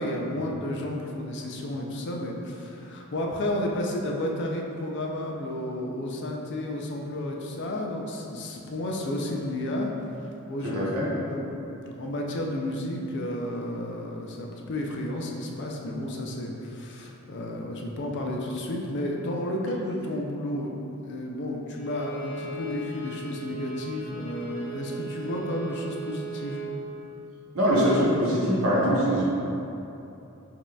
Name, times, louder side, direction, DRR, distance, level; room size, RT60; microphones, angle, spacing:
voice 1, 0.0-9.9 10.5-11.5 11.8-20.8 21.0-26.6, left 1 dB, 55° left, 0 dB, 0.4 m, -32 dB
voice 2, 10.7-11.1 27.5-29.2, equal, 75° right, -7 dB, 1.0 m, -22 dB
Bowed string instrument, 21.7-26.8, right 2 dB, 75° left, 0.8 m, -38 dB
5.0 x 2.8 x 2.3 m, 2.9 s
head